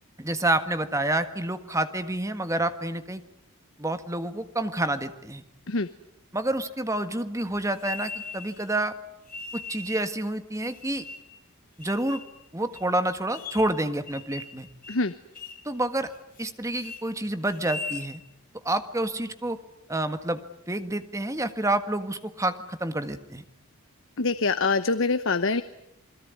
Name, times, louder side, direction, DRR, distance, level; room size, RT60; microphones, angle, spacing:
voice 1, 0.2-3.2 3.8-5.4 6.3-8.9 9.5-11.0 11.8-12.2 12.5-14.7 15.6-16.1 16.4-18.2 18.6-19.6 19.9-20.4 20.7-23.4, right 1 dB, 15° right, 10 dB, 1.6 m, -28 dB
sound 1, 7.8-8.6 9.3-10.1 10.6-11.3 11.8-12.3 12.7-12.8 13.3-13.8 14.1-14.6 14.8-15.0 15.3-15.7 16.1-16.5 16.8-17.0 17.5-18.1, left 3 dB, 40° left, 2.8 m, -39 dB
voice 2, 24.2-25.6, left 3 dB, 60° left, 12 dB, 1.0 m, -24 dB
28.0 x 21.5 x 9.5 m, 0.78 s
head